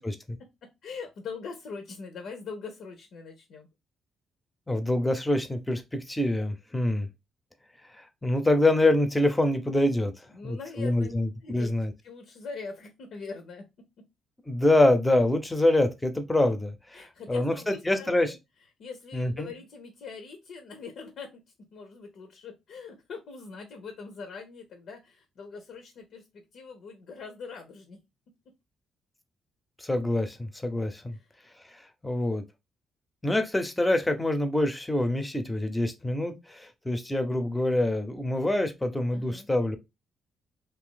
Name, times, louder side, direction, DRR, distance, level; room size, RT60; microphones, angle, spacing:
voice 1, 0.4-3.7 10.3-11.1 11.4-11.7 12.0-13.7 14.0-14.1 16.9-18.4 18.8-28.0 31.1-31.5 39.1-39.5, left 5 dB, 70° left, 0.7 m, -42 dB
voice 2, 4.7-7.1 8.0-10.1 10.4-11.9 14.5-18.3 19.1-19.5 29.8-31.2 31.7-32.4 33.2-39.8, left 1 dB, 10° left, 0.7 m, -25 dB
2.7 x 2.5 x 3.8 m
cardioid pair, 90°, 0 cm